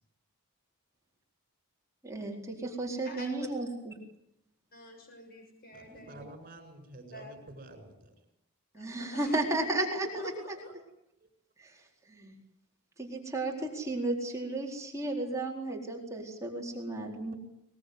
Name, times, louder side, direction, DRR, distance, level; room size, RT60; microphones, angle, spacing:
voice 1, 2.0-3.9 8.7-10.1 11.6-11.7 12.1-12.3 13.0-17.3, right 2 dB, 15° right, 0 dB, 4.3 m, -33 dB
voice 2, 3.0-3.5 4.7-6.2 7.1-7.4 8.7-9.4 9.7-10.7, left 2 dB, 45° left, 4 dB, 6.6 m, -44 dB
voice 3, 5.7-8.1 11.2-11.3 17.3-17.4, right 1 dB, 40° right, 6 dB, 7.5 m, -49 dB
22.0 x 22.0 x 9.5 m, 0.77 s
head